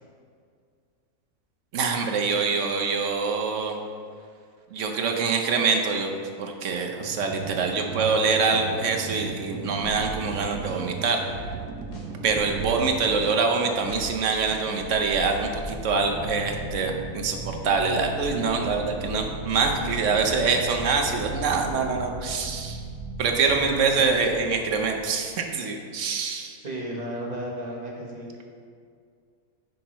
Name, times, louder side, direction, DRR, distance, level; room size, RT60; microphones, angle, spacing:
voice 1, 1.7-3.7 4.7-11.2 12.2-22.8 23.2-26.6, right 4 dB, 60° right, 3 dB, 1.0 m, -25 dB
sound 1, 7.0-13.9, right 7 dB, 85° right, 1.2 m, -37 dB
voice 2, 7.6-7.9 23.6-24.5 26.6-28.3, right 1 dB, 30° right, -3 dB, 1.2 m, -34 dB
sound 2, 9.8-10.3 10.6-10.8 11.2-11.6 11.9-12.9 13.2-13.3 13.7-15.6, right 1 dB, 45° left, 1.3 m, -39 dB
sound 3, 15.3-25.1, right 1 dB, 15° right, 1.8 m, -37 dB
10.0 x 6.4 x 3.0 m, 2.2 s
omnidirectional pair, 1.6 m